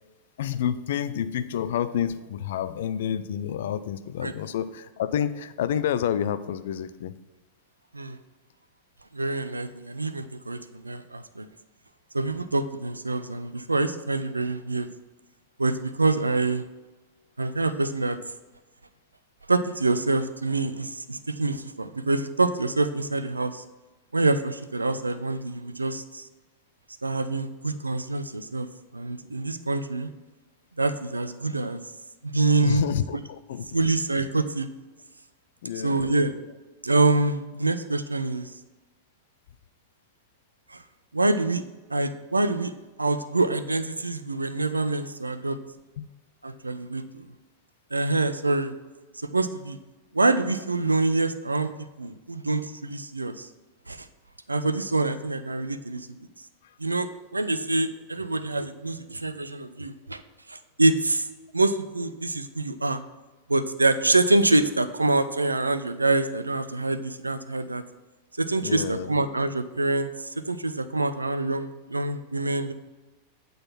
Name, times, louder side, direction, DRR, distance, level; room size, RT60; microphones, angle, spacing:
voice 1, 0.4-7.1 32.6-33.7 35.6-36.1 46.0-46.1 46.6-46.7 56.6-56.8 68.6-69.1, left 9 dB, 60° left, 13 dB, 0.4 m, -29 dB
voice 2, 9.1-11.5 12.1-14.9 15.6-16.6 17.4-18.2 19.5-23.6 24.1-26.3 27.0-28.7 28.9-30.1 30.8-31.8 32.2-32.9 33.7-34.7 35.8-36.3 36.8-38.5 40.7-40.8 41.1-41.6 41.9-42.7 43.0-45.6 46.4-47.0 47.9-48.7 49.3-49.8 50.1-51.7 52.0-53.5 53.9-54.1 54.5-56.1 56.8-60.2 60.5-61.3 61.5-63.0 63.5-67.8 68.4-72.7, right 2 dB, 80° right, 11 dB, 0.4 m, -26 dB
8.7 x 3.9 x 5.9 m, 1.2 s
figure-of-eight pair, 90°, 0 cm